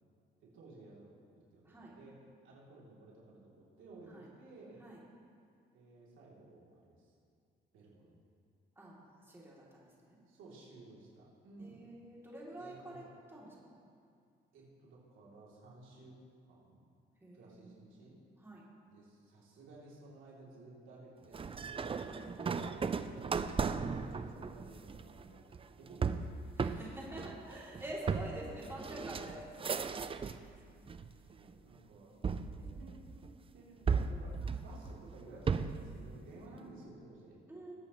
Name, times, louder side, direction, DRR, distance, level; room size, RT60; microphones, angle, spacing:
voice 1, 0.4-1.1 1.5-2.2 2.4-4.8 5.7-7.1 7.7-8.2 10.3-11.9 12.6-13.0 14.5-16.2 16.5-16.8 17.3-18.2 18.9-21.8 22.2-26.2 26.6-26.8 28.0-28.2 30.5-30.9 31.3-32.1 32.5-33.3 33.5-37.4, right 2 dB, 85° right, -5 dB, 3.2 m, -55 dB
voice 2, 8.7-10.2 11.6-13.8 17.2-18.0 18.4-18.6 22.0-22.3 26.6-29.5 30.4-30.6 32.1-32.9 34.4-34.6 36.3-36.8 37.5-37.8, right 1 dB, 10° right, -6 dB, 3.0 m, -48 dB
sound 1, 21.3-30.5 30.9-31.5 32.2-33.3 33.9-35.9, right 5 dB, 30° right, 0.5 m, -36 dB
20.5 x 8.6 x 3.2 m, 2.2 s
cardioid pair, 90°, 20 cm